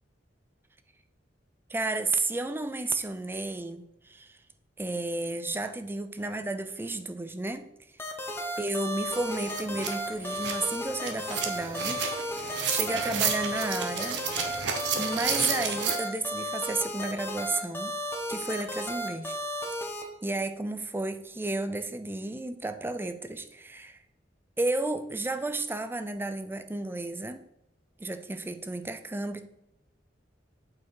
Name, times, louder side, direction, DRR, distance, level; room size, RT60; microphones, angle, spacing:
voice 1, 1.7-4.4 4.8-7.7 8.6-12.4 12.7-14.2 15.0-17.9 18.3-19.4 20.2-24.0 24.6-27.4 28.0-29.5, right 2 dB, 10° right, 9 dB, 0.4 m, -32 dB
sound 1, 8.0-20.0, equal, 15° left, 0.9 m, -34 dB
sound 2, 8.7-8.8 9.1-16.0, right 6 dB, 70° right, 1.0 m, -32 dB
8.4 x 4.6 x 4.7 m, 0.87 s
head